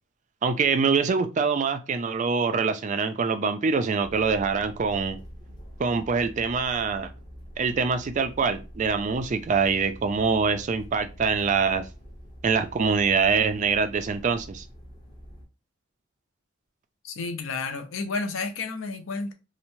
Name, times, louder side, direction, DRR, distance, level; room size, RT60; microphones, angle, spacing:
voice 1, 0.4-5.2 5.8-7.1 7.6-11.8 12.4-14.6, right 5 dB, 35° right, 0.3 m, -24 dB
sound 1, 4.0-15.5, equal, 20° left, 0.6 m, -45 dB
voice 2, 17.0-19.3, left 4 dB, 70° left, 0.5 m, -31 dB
2.9 x 2.0 x 2.6 m
head